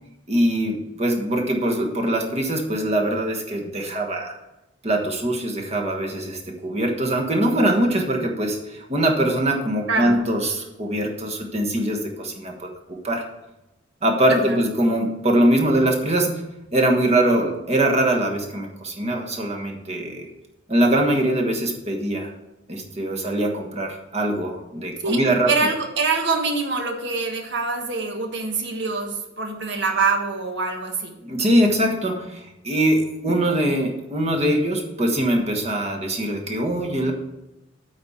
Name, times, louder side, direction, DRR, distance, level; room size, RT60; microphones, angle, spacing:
voice 1, 0.3-4.3 4.8-13.2 14.0-16.4 16.7-20.3 20.7-22.3 22.7-25.5 31.2-37.1, right 1 dB, 30° right, 1 dB, 1.3 m, -22 dB
voice 2, 9.9-10.2 14.3-14.6 25.0-25.2 25.5-31.1 33.3-33.4, right 4 dB, 60° right, 3 dB, 1.4 m, -25 dB
8.7 x 4.2 x 7.3 m, 0.94 s
head